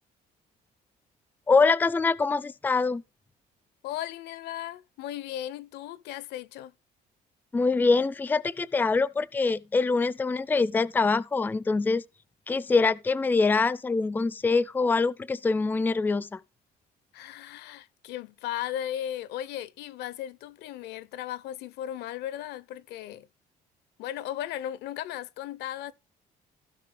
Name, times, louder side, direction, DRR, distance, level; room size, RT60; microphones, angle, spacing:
voice 1, 1.5-3.0 7.5-12.0 12.5-16.4, left 4 dB, 10° left, 0.4 m, -24 dB
voice 2, 3.8-6.7 17.1-23.3 24.0-25.9, left 12 dB, 80° left, 0.7 m, -36 dB
16.0 x 5.4 x 3.3 m
cardioid pair, 110°, 17 cm